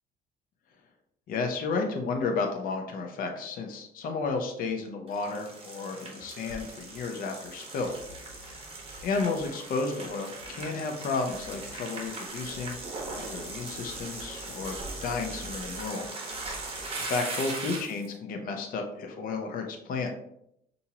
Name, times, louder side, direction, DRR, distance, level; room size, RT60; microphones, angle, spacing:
voice 1, 1.3-7.9 8.4-8.6 9.0-12.8 13.1-16.1 17.1-20.1, left 4 dB, 55° left, 3 dB, 0.7 m, -32 dB
sound 1, 5.1-18.1, right 2 dB, 35° right, 1.3 m, -39 dB
5.7 x 2.7 x 2.8 m, 0.76 s
cardioid pair, 110°, 17 cm